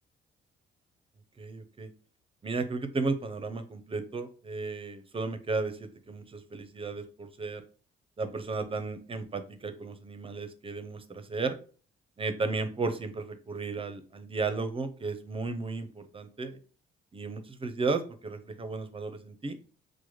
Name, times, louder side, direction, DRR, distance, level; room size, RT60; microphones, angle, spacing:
voice 1, 1.4-1.9 2.4-7.6 8.2-11.6 12.2-16.6 17.1-19.6, right 3 dB, 25° right, 9 dB, 0.5 m, -34 dB
4.7 x 2.1 x 3.0 m, 0.40 s
cardioid pair, 90°, 20 cm